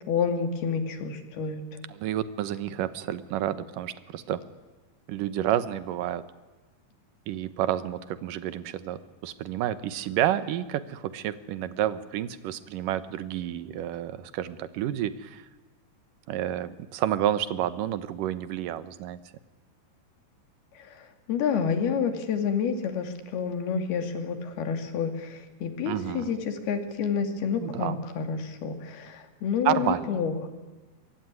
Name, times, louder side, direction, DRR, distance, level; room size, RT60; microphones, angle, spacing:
voice 1, 0.1-1.6 21.3-30.5, left 6 dB, 90° left, 6 dB, 4.3 m, -29 dB
voice 2, 1.9-4.4 5.1-6.2 7.3-15.4 16.3-19.2 25.9-26.4 27.6-28.0 29.7-30.2, right 12 dB, 70° right, 13 dB, 2.5 m, -30 dB
24.5 x 23.0 x 9.6 m, 1.2 s
omnidirectional pair, 4.3 m